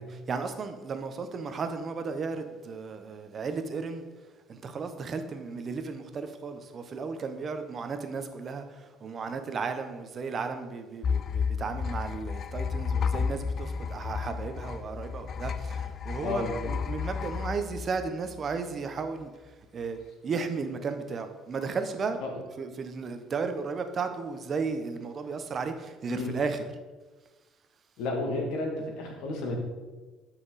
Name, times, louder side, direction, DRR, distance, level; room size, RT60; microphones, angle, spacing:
voice 1, 0.3-4.0 4.5-22.2 22.6-26.6, right 5 dB, 35° right, 8 dB, 0.9 m, -34 dB
sound 1, 11.0-18.5, left 6 dB, 40° left, 0.4 m, -32 dB
voice 2, 16.2-16.7 22.2-22.3 26.1-26.3 28.0-29.6, left 2 dB, 75° left, 1 dB, 2.2 m, -32 dB
13.0 x 5.9 x 4.1 m, 1.3 s
cardioid pair, 135°, 0 cm